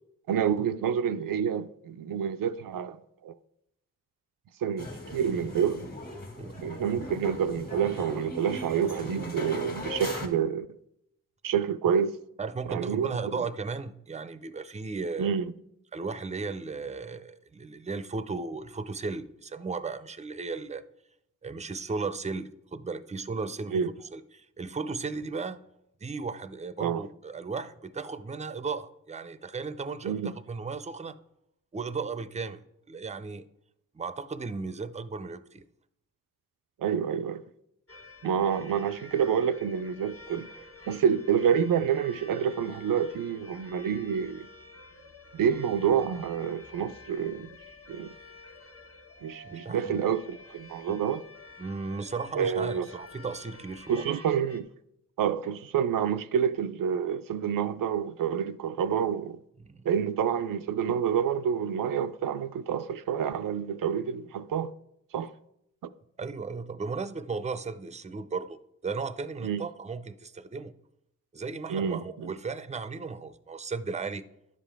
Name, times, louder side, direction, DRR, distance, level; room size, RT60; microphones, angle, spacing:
voice 1, 0.3-3.3 4.6-5.9 6.6-10.7 11.4-12.1 12.7-13.4 15.2-15.5 23.7-23.9 26.8-27.0 30.0-30.3 36.8-37.4 38.2-40.5 40.9-44.5 45.3-47.5 47.9-48.1 49.2-51.2 52.3-52.9 53.9-54.7 55.2-59.4 59.8-64.7 65.1-65.3 65.8-65.9 69.4-69.7 71.7-72.3, right 8 dB, 85° right, 0.5 m, -28 dB
sound 1, 4.8-10.3, left 1 dB, 30° left, 1.7 m, -39 dB
voice 2, 12.4-15.3 15.9-20.8 21.4-25.6 26.0-31.2 31.7-33.4 33.9-35.6 49.4-50.0 50.9-51.1 51.6-54.1 59.6-59.8 66.2-68.6 68.8-70.7 71.3-74.2, right 4 dB, 20° right, 0.5 m, -35 dB
sound 2, 37.9-54.6, left 2 dB, 45° left, 1.2 m, -50 dB
10.5 x 7.3 x 3.4 m
cardioid pair, 65°, 32 cm